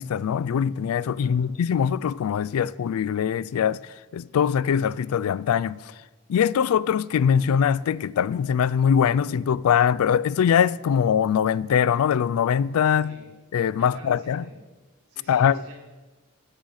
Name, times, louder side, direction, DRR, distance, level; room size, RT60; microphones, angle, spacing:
voice 1, 0.0-5.9 6.3-13.2 13.5-14.4 15.3-15.6, left 8 dB, 85° left, 0.3 m, -22 dB
voice 2, 12.8-13.3 13.8-14.6 15.1-15.7, right 2 dB, 80° right, 2.5 m, -48 dB
9.2 x 8.7 x 6.4 m
head